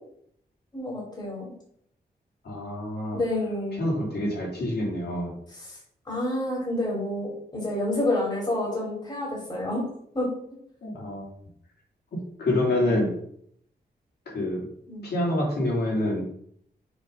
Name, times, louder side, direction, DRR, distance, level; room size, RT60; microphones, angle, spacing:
voice 1, 0.7-1.5 3.1-3.9 5.5-5.8 6.1-9.8 10.1-10.3 14.9-15.1, left 1 dB, 25° left, -3 dB, 3.0 m, -29 dB
voice 2, 2.4-3.2 3.8-5.3 10.8-11.3 12.4-13.1 14.3-14.7 15.0-16.2, left 1 dB, 70° left, -4 dB, 2.8 m, -27 dB
6.9 x 3.9 x 5.5 m, 0.67 s
wide cardioid pair, 145°, 17 cm